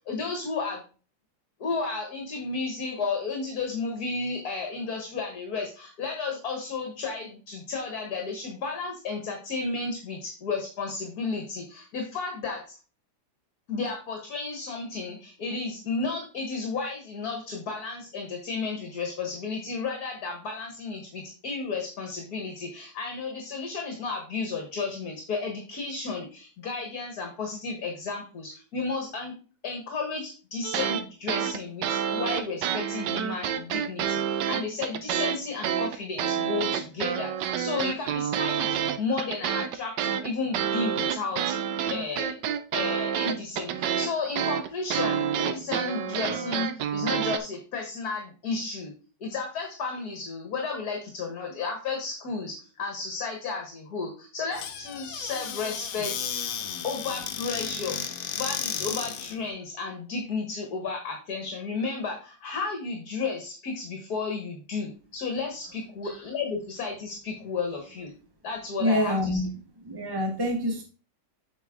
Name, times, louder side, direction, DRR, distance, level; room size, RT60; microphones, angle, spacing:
voice 1, 0.1-0.8 1.6-12.6 13.7-29.4 29.6-41.6 41.9-42.3 42.7-48.9 49.2-56.4 56.8-58.0 58.3-68.1 68.4-69.4, left 4 dB, 60° left, 3 dB, 1.9 m, -33 dB
sound 1, 30.6-31.0 31.3-35.4 35.6-47.4, right 9 dB, 85° right, 1.4 m, -28 dB
Squeak / Cupboard open or close, 54.5-59.4, left 8 dB, 90° left, 1.5 m, -33 dB
voice 2, 68.8-69.5 69.8-70.8, left 1 dB, 20° right, 2 dB, 0.7 m, -26 dB
8.2 x 5.2 x 3.7 m, 0.36 s
omnidirectional pair, 1.8 m